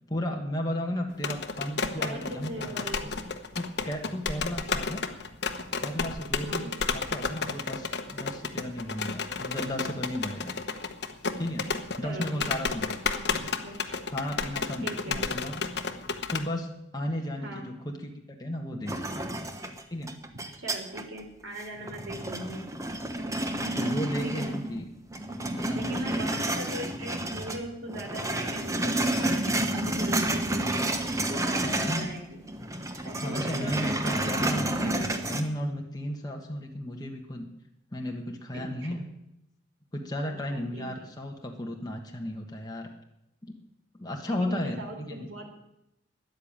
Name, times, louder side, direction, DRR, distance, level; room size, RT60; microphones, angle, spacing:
voice 1, 0.1-2.7 3.0-3.1 3.6-5.0 5.8-10.5 11.4-11.6 12.0-12.9 13.3-13.5 14.1-15.8 16.3-19.1 19.9-20.1 23.6-24.9 25.2-26.5 31.6-32.0 33.2-37.5 37.9-39.0 39.9-42.9 43.4-43.6 44.0-45.3, left 1 dB, 20° left, 1 dB, 1.5 m, -34 dB
sound 1, 1.1-16.5, left 4 dB, 55° left, 1.1 m, -32 dB
voice 2, 2.0-3.1 6.4-6.7 12.0-12.7 13.1-14.0 14.8-15.2 17.4-17.7 20.6-22.7 24.2-24.6 25.7-30.9 31.3-32.4 33.0-35.3 38.8-38.9 40.2-41.1 44.3-45.6, right 1 dB, 90° right, 1 dB, 3.9 m, -40 dB
sound 2, 18.9-21.2 21.6-24.8 25.1-27.6 27.9-32.2 32.4-35.4, right 1 dB, 15° right, 1.1 m, -30 dB
13.5 x 10.5 x 8.8 m, 0.85 s
head